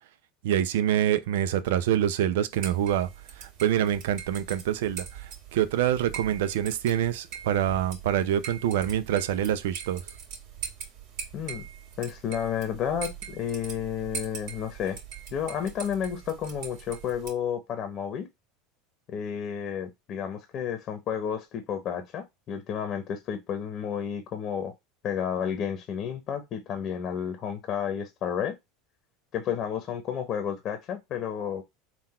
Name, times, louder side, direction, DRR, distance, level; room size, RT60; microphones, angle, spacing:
voice 1, 0.4-3.1 3.4-10.0, right 10 dB, 80° right, 0.5 m, -26 dB
sound 1, 2.5-17.3, right 7 dB, 65° right, 1.7 m, -42 dB
voice 2, 11.3-11.7 12.0-15.0 15.3-18.3 19.1-24.7 25.0-28.6 29.3-31.6, left 8 dB, 40° left, 0.9 m, -31 dB
3.9 x 2.4 x 4.1 m
supercardioid pair, 125°, 0 cm